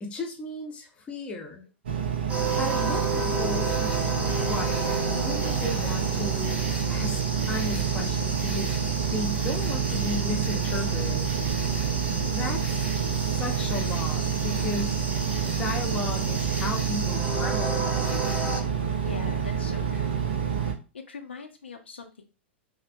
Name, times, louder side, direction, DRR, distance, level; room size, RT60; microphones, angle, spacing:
voice 1, 0.0-1.6 2.3-6.6 6.9-8.8 9.1-11.3 11.8-12.8 13.2-15.0 15.4-17.9, left 2 dB, 20° left, 2 dB, 0.6 m, -35 dB
Engine, 1.9-20.7, right 7 dB, 60° right, 0.5 m, -28 dB
sound 1, 2.3-18.6, right 2 dB, 20° right, 0.8 m, -33 dB
voice 2, 19.0-20.2 20.9-22.2, left 4 dB, 70° left, 5 dB, 0.4 m, -41 dB
3.2 x 2.1 x 2.5 m, 0.31 s
figure-of-eight pair, 100°, 6 cm